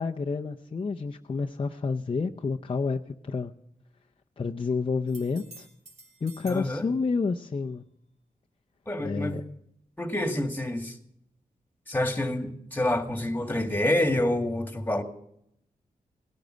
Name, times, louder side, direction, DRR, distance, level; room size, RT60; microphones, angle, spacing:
voice 1, 0.0-3.5 4.4-5.7 6.2-7.8 9.0-9.4, left 4 dB, 40° left, 3 dB, 0.7 m, -29 dB
sound 1, 5.1-6.7 10.4-10.5, right 2 dB, 55° right, 3.2 m, -50 dB
voice 2, 6.5-6.9 8.9-9.4 10.0-11.0 11.9-15.0, left 1 dB, 15° left, 6 dB, 2.0 m, -27 dB
18.0 x 12.0 x 6.4 m, 0.75 s
wide cardioid pair, 80°, 15 cm